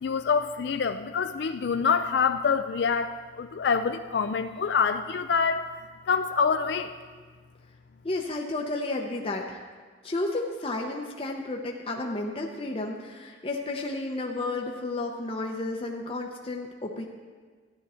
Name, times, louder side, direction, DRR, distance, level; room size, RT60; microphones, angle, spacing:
voice 1, 0.0-5.7 6.1-6.9, left 5 dB, 60° left, 8 dB, 0.4 m, -26 dB
voice 2, 8.0-9.6 10.0-17.0, left 2 dB, 30° left, 0 dB, 0.7 m, -32 dB
13.5 x 10.5 x 4.3 m, 1.5 s
head